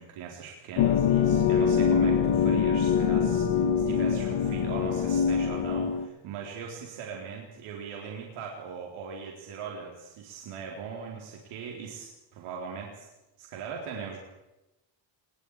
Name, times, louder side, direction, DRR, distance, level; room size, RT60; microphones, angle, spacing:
voice 1, 0.0-13.1 13.4-14.2, right 6 dB, 90° right, -1 dB, 4.3 m, -40 dB
sound 1, 0.8-6.1, left 7 dB, 65° left, 1.9 m, -24 dB
28.5 x 20.0 x 5.0 m, 0.98 s
cardioid pair, 145°, 49 cm